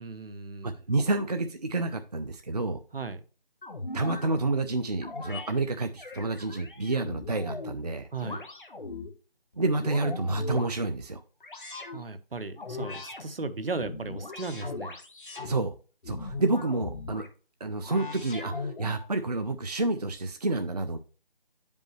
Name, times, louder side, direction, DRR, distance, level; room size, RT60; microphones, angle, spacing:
voice 1, 0.0-0.7 2.9-3.2 8.1-8.4 11.9-15.0, right 3 dB, 75° right, 11 dB, 0.9 m, -36 dB
voice 2, 0.6-2.8 3.9-8.1 9.6-11.2 15.4-15.7 16.1-17.3 17.6-21.0, right 2 dB, 45° right, 7 dB, 0.5 m, -29 dB
sound 1, 3.6-4.3 5.0-5.5 6.0-7.8 8.2-9.1 9.6-10.7 11.4-12.0 12.6-13.2 13.7-15.5 16.0-17.3 17.8-19.1, left 3 dB, 60° left, 1.2 m, -38 dB
8.5 x 5.3 x 3.1 m, 0.37 s
figure-of-eight pair, 165°, 29 cm